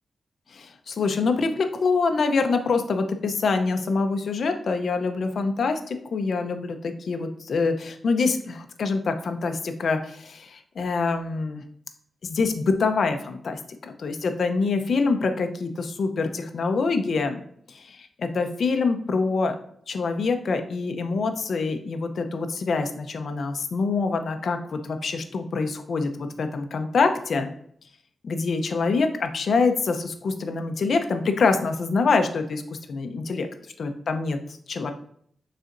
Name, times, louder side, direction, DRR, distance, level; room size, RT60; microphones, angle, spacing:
voice 1, 0.5-11.6 12.2-17.4 17.7-19.6 19.9-27.5 28.2-33.5 33.8-34.9, left 4 dB, 60° left, 7 dB, 0.6 m, -25 dB
9.2 x 4.1 x 2.6 m, 0.65 s
wide cardioid pair, 135°, 0 cm